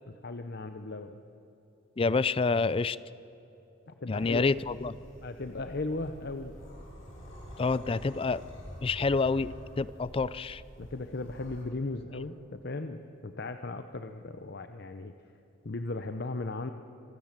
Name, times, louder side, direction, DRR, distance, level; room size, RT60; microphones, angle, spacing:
voice 1, 0.1-1.2 3.9-4.4 5.2-6.5 10.8-15.1 15.6-16.7, left 2 dB, 55° left, 8 dB, 0.8 m, -37 dB
voice 2, 2.0-3.0 4.1-4.9 7.6-8.4 8.8-10.6, left 4 dB, 30° left, 18 dB, 0.4 m, -28 dB
sound 1, 4.1-11.6, equal, 70° left, 6.9 m, -47 dB
25.5 x 17.0 x 7.4 m, 2.9 s
head